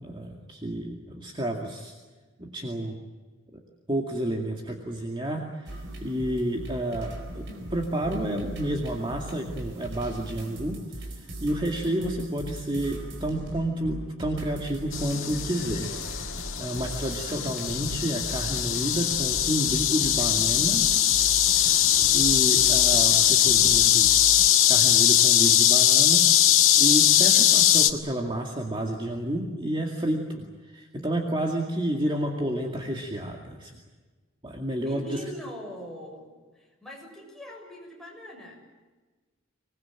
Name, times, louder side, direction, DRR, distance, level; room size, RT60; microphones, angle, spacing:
voice 1, 0.0-1.9 2.4-3.0 3.5-3.6 3.9-15.9 16.3-20.9 21.7-24.1 24.7-26.3 26.8-33.8 34.4-35.2, right 1 dB, 25° right, 0 dB, 2.3 m, -30 dB
sound 1, 5.7-24.5, right 1 dB, 55° right, 4.6 m, -39 dB
sound 2, 14.9-27.9, left 11 dB, 70° left, 1.8 m, -21 dB
voice 2, 34.8-38.6, equal, ahead, -2 dB, 6.8 m, -42 dB
25.5 x 20.5 x 9.0 m, 1.3 s
head